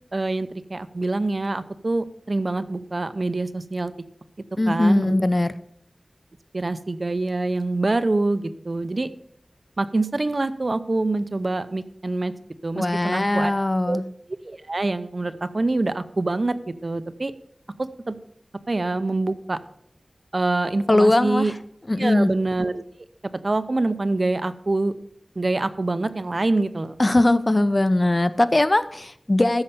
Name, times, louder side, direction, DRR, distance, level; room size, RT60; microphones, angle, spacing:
voice 1, 0.1-3.9 4.7-5.2 6.5-9.1 9.8-12.3 12.6-13.5 13.8-14.0 14.4-17.3 17.8-18.1 18.7-19.6 20.3-21.5 22.0-22.8 23.4-24.9 25.4-27.0, right 2 dB, 50° right, 13 dB, 0.6 m, -25 dB
voice 2, 4.6-5.5 12.8-14.0 20.9-21.5 21.9-22.3 27.0-29.6, left 1 dB, 30° left, 13 dB, 0.6 m, -20 dB
13.5 x 5.5 x 6.8 m, 0.71 s
wide cardioid pair, 70°, 0 cm